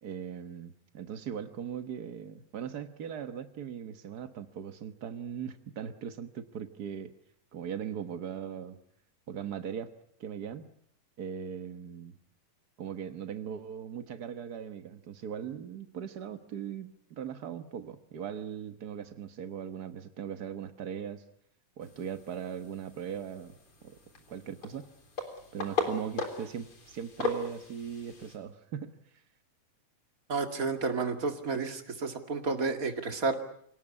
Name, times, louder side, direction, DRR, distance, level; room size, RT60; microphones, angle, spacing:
voice 1, 0.0-7.1 7.5-8.8 9.3-9.9 10.2-10.7 11.2-12.2 12.8-21.2 21.8-23.5 23.8-24.0 24.3-24.9 25.5-29.0, right 8 dB, 90° right, 9 dB, 0.8 m, -39 dB
sound 1, 21.8-28.4, left 3 dB, 40° left, 4.3 m, -38 dB
voice 2, 30.3-33.4, right 4 dB, 30° right, 6 dB, 2.1 m, -31 dB
27.5 x 18.0 x 9.7 m, 0.70 s
omnidirectional pair, 3.7 m